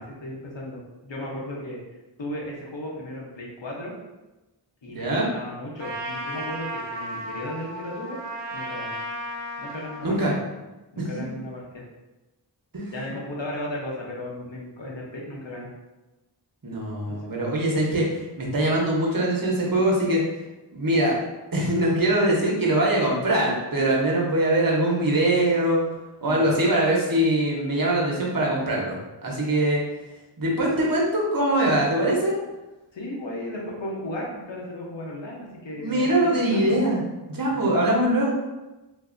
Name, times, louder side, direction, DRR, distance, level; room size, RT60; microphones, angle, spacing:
voice 1, 0.0-1.8 2.2-3.9 4.8-8.2 8.5-8.9 9.6-10.4 10.9-11.8 12.9-15.7 17.2-17.3 26.2-26.5 32.9-36.8 37.5-37.8, left 1 dB, 80° left, -3 dB, 0.9 m, -35 dB
voice 2, 4.9-5.3 10.0-10.3 11.0-11.1 12.7-13.1 16.6-20.2 20.7-21.2 21.5-25.8 26.2-29.8 30.4-32.4 35.8-37.0 37.3-38.3, right 1 dB, 50° right, -3 dB, 0.9 m, -22 dB
Trumpet, 5.8-10.1, right 1 dB, 75° right, 0.5 m, -34 dB
3.3 x 2.6 x 2.5 m, 1.1 s
wide cardioid pair, 40°, 44 cm